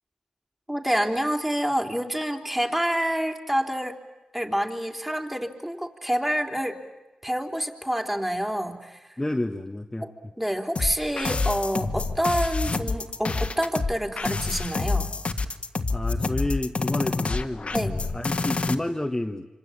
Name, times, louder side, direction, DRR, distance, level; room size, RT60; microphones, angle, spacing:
voice 1, 0.7-4.0 4.3-6.8 7.2-9.2 10.0-10.1 10.4-15.1 17.7-17.9, equal, 10° right, 3 dB, 3.7 m, -27 dB
voice 2, 9.2-10.1 15.9-19.5, left 1 dB, 15° left, 4 dB, 1.5 m, -30 dB
sound 1, 10.8-18.7, left 3 dB, 55° left, 1.8 m, -27 dB
26.5 x 25.5 x 8.8 m, 1.1 s
cardioid pair, 55°, 2 cm